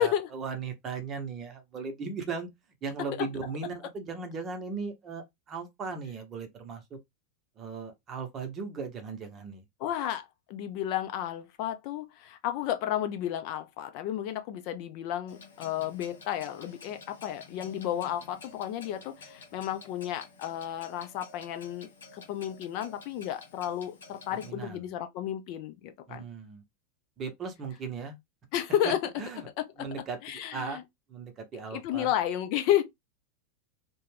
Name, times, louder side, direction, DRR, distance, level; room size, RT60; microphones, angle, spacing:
voice 1, 0.0-2.5 2.8-6.8 7.6-9.6 24.4-24.9 26.1-26.6 27.2-28.2 28.8-28.9 29.2-29.5 29.8-30.2 30.5-30.8 31.1-32.1, right 5 dB, 30° right, 0.8 m, -37 dB
voice 2, 9.8-26.2 28.5-29.0 29.6-29.9 30.2-30.8 31.7-32.8, left 11 dB, 50° left, 0.4 m, -32 dB
Clock, 15.3-24.5, left 4 dB, 70° left, 0.8 m, -51 dB
2.4 x 2.2 x 3.2 m
figure-of-eight pair, 85°, 0 cm